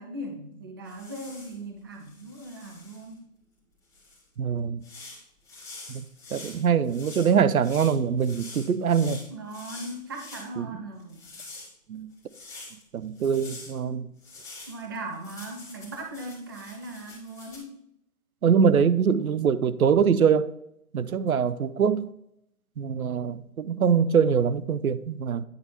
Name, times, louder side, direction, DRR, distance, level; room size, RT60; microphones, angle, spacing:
voice 1, 0.0-3.2 9.3-11.2 13.8-14.0 14.7-17.8, right 1 dB, 15° right, 0.4 m, -39 dB
sound 1, 0.9-1.6 2.0-3.1 3.9-4.2 4.8-10.5 11.0-12.8 13.2-13.8 14.2-17.6, left 3 dB, 5° left, 2.4 m, -45 dB
voice 2, 4.4-4.8 5.9-6.0 6.3-9.2 10.6-10.8 11.9-12.1 12.9-14.1 18.4-20.5 20.9-22.1 22.8-25.4, right 7 dB, 80° right, 0.7 m, -23 dB
9.5 x 4.1 x 4.4 m
figure-of-eight pair, 140°, 43 cm